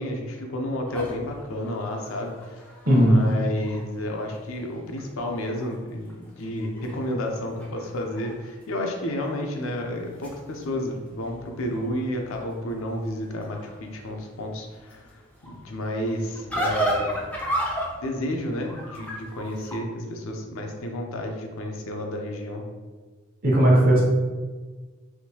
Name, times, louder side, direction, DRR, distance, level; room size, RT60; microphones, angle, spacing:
voice 1, 0.0-2.6 3.1-17.2 18.0-22.6, left 1 dB, 75° left, 2 dB, 0.5 m, -31 dB
sound 1, 0.9-4.1 4.6-4.7 5.0-5.7 6.0-8.3 8.6-9.1 9.8-19.8, equal, 5° left, 0.4 m, -34 dB
voice 2, 2.8-3.2 23.4-24.0, right 1 dB, 45° right, -3 dB, 0.8 m, -16 dB
3.5 x 2.6 x 2.8 m, 1.4 s
head